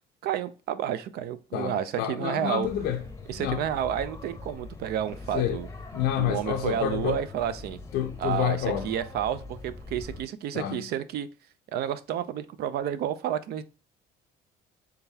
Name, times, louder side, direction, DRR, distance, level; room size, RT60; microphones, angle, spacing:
voice 1, 0.2-2.7 3.3-5.7 6.2-7.8 8.2-8.6 8.8-11.3 11.7-13.6, right 10 dB, 70° right, 0.5 m, -30 dB
voice 2, 1.5-3.0 3.4-3.6 5.3-5.6 5.9-7.2 7.9-8.9 10.5-10.9, left 10 dB, 80° left, 0.5 m, -28 dB
sound 1, 2.6-10.2, left 3 dB, 15° left, 0.7 m, -42 dB
3.8 x 3.4 x 2.7 m
cardioid pair, 110°, 17 cm